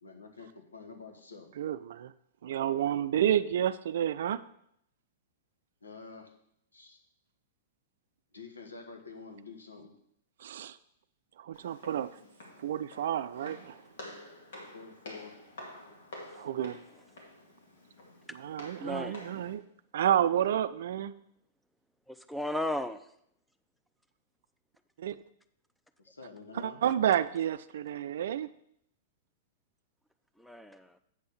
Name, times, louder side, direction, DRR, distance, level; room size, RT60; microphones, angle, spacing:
voice 1, 0.0-1.5 5.8-6.3 6.7-7.0 8.3-9.9 14.7-15.4 26.0-26.8, left 4 dB, 85° left, 4 dB, 1.3 m, -48 dB
voice 2, 1.6-2.1 2.4-4.4 10.4-10.8 11.4-12.2 12.6-13.8 16.4-16.8 18.4-19.6 19.9-21.1 25.0-25.2 26.5-28.5, right 10 dB, 65° right, 15 dB, 0.4 m, -30 dB
Walk footsteps, 11.5-19.5, left 1 dB, 70° left, 2.1 m, -49 dB
voice 3, 18.8-19.3 22.1-23.1 30.4-31.0, left 1 dB, ahead, 9 dB, 0.6 m, -35 dB
8.0 x 4.3 x 6.6 m, 0.72 s
hypercardioid pair, 105°, 0 cm